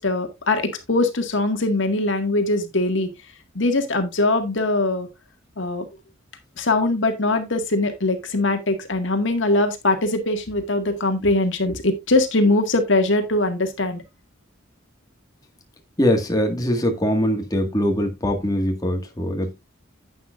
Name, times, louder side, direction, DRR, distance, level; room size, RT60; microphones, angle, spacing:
voice 1, 0.0-3.1 3.5-5.1 5.6-5.9 6.6-14.0, left 2 dB, 65° left, 2.0 m, -21 dB
voice 2, 16.0-19.6, equal, 20° left, 1.9 m, -22 dB
11.0 x 9.2 x 2.5 m
head